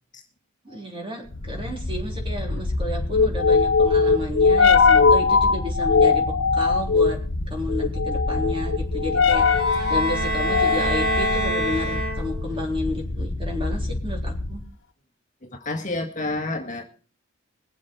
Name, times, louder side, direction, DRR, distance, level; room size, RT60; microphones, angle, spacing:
voice 1, 0.6-7.2 7.5-9.5 9.9-14.6, left 1 dB, 25° right, 1 dB, 3.8 m, -31 dB
sound 1, 1.3-14.7, left 4 dB, 60° left, 1.0 m, -21 dB
sound 2, 9.4-12.6, right 1 dB, 55° right, 5.1 m, -27 dB
voice 2, 15.4-16.8, left 2 dB, 35° left, 3 dB, 1.8 m, -30 dB
22.0 x 7.5 x 4.7 m, 0.38 s
head